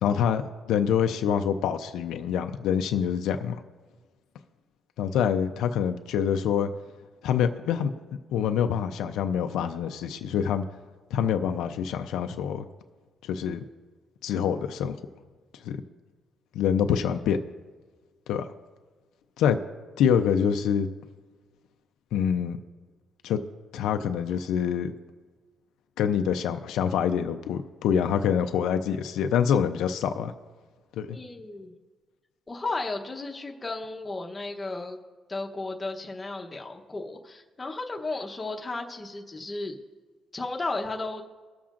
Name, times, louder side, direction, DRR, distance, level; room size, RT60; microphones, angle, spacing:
voice 1, 0.0-0.4 0.7-3.6 5.0-6.7 7.2-7.9 8.3-10.6 11.1-12.6 13.2-13.6 14.2-15.0 15.6-15.8 16.5-17.4 18.3-18.5 19.4-19.6 20.0-20.9 22.1-22.6 23.2-23.4 23.7-24.9 26.0-30.3 31.0-31.2, left 8 dB, 85° left, 7 dB, 0.5 m, -25 dB
voice 2, 31.1-31.7 32.5-35.0 35.3-39.8 40.3-41.2, left 3 dB, 20° left, 1 dB, 0.9 m, -34 dB
21.0 x 7.1 x 2.5 m, 1.4 s
cardioid pair, 125°, 0 cm